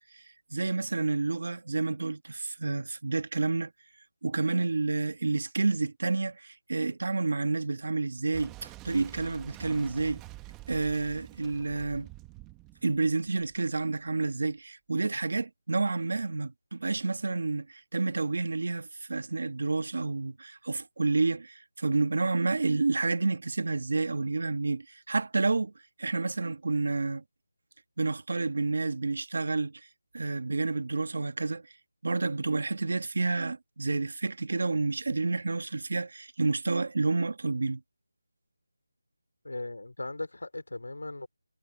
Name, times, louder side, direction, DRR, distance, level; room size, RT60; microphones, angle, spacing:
voice 1, 0.5-3.7 4.2-10.2 10.7-12.1 12.8-25.7 26.0-27.2 28.0-29.8 30.1-31.6 32.0-37.8, right 3 dB, 45° right, 1.2 m, -29 dB
Boom, 8.3-13.9, right 18 dB, 5° right, 1.0 m, -48 dB
voice 2, 39.4-41.3, left 2 dB, 85° left, 3.4 m, -38 dB
figure-of-eight pair, 180°, 0 cm